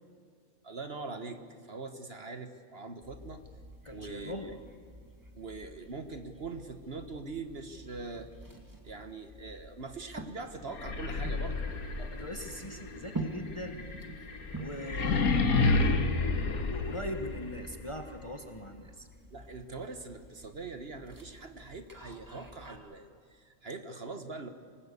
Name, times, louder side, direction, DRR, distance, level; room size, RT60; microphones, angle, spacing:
voice 1, 0.6-1.4 1.7-3.4 3.9-4.6 5.4-8.3 8.8-11.6 16.2-16.3 19.3-24.5, right 3 dB, 45° right, 8 dB, 1.3 m, -42 dB
sound 1, 3.0-22.8, right 2 dB, 15° right, 1.9 m, -47 dB
voice 2, 3.8-4.6 12.0-13.9 14.5-19.1, left 1 dB, 20° left, 6 dB, 1.2 m, -41 dB
sound 2, 10.7-17.6, left 3 dB, 75° left, 2.1 m, -30 dB
26.0 x 19.0 x 8.3 m, 2.1 s
omnidirectional pair, 1.5 m